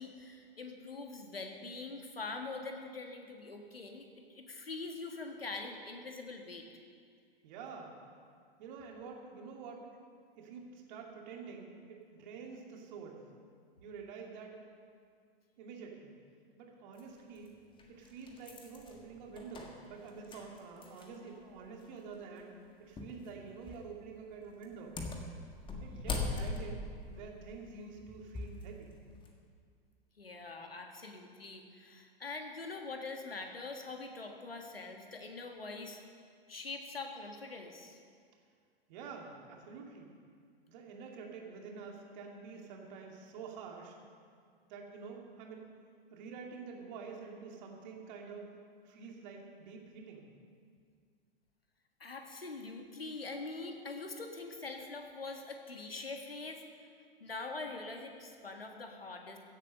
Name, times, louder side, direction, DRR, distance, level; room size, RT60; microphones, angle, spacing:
voice 1, 0.0-6.7 30.2-36.0 36.5-38.0 52.0-56.6 57.2-59.4, left 3 dB, 80° left, 4 dB, 1.7 m, -44 dB
voice 2, 7.4-7.9 8.6-9.9 10.4-13.2 13.8-14.6 15.6-16.2 16.6-17.6 17.9-25.0 25.8-28.9 38.9-40.1 40.7-44.0 44.7-45.7 46.1-48.4 48.8-50.3, right 5 dB, 50° right, 0 dB, 2.5 m, -48 dB
sound 1, 17.0-17.1 17.8-21.3 21.6-21.7 23.0-23.2 23.6-23.9 24.6-28.6 29.1-29.3, left 3 dB, 15° left, 1.6 m, -41 dB
16.0 x 8.3 x 6.5 m, 2.2 s
figure-of-eight pair, 95°, 29 cm